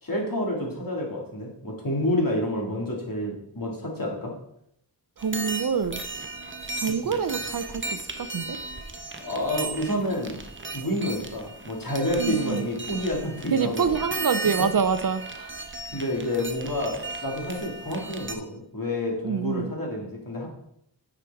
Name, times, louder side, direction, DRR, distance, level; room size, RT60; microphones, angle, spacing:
voice 1, 0.0-4.3 7.0-7.1 9.2-10.4 10.7-13.9 14.6-14.7 15.9-20.5, left 1 dB, 50° left, -2 dB, 2.4 m, -29 dB
sound 1, 5.2-18.3, right 3 dB, 30° right, 0.8 m, -36 dB
voice 2, 5.2-6.0 6.8-8.6 12.2-12.7 13.5-15.5 19.2-19.7, right 6 dB, 55° right, 11 dB, 0.5 m, -26 dB
9.0 x 4.9 x 3.5 m, 0.74 s
wide cardioid pair, 45°, 42 cm